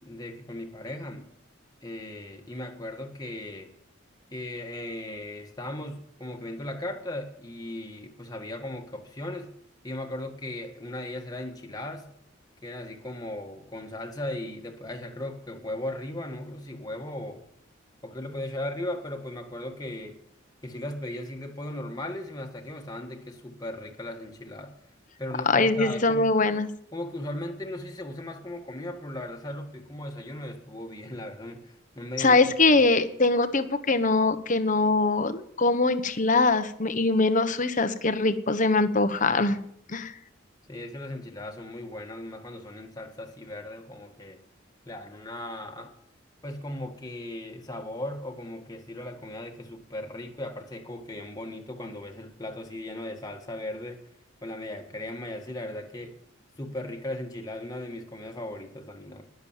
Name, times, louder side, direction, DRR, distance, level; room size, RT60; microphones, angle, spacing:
voice 1, 0.0-1.3 1.8-3.7 4.3-9.5 9.8-12.1 12.6-17.4 18.0-20.2 20.6-24.7 25.2-26.3 26.9-32.4 32.7-32.8 40.7-44.4 44.8-45.9 46.4-54.0 54.4-56.1 56.6-59.2, left 1 dB, 20° left, 3 dB, 1.8 m, -37 dB
voice 2, 25.5-26.7 32.2-39.6 39.9-40.1, left 3 dB, 40° left, 10 dB, 1.1 m, -22 dB
20.0 x 7.3 x 7.4 m, 0.69 s
head